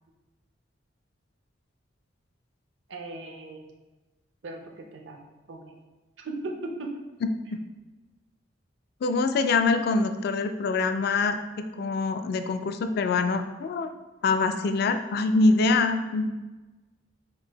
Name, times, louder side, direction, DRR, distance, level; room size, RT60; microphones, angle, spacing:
voice 1, 2.9-3.7 4.4-5.2 5.5-5.7 6.2-6.5 6.8-6.9, right 3 dB, 70° right, 3 dB, 0.6 m, -38 dB
voice 2, 9.0-13.9 14.2-16.3, left 3 dB, 55° left, 8 dB, 0.3 m, -24 dB
4.5 x 2.6 x 3.9 m, 1.2 s
head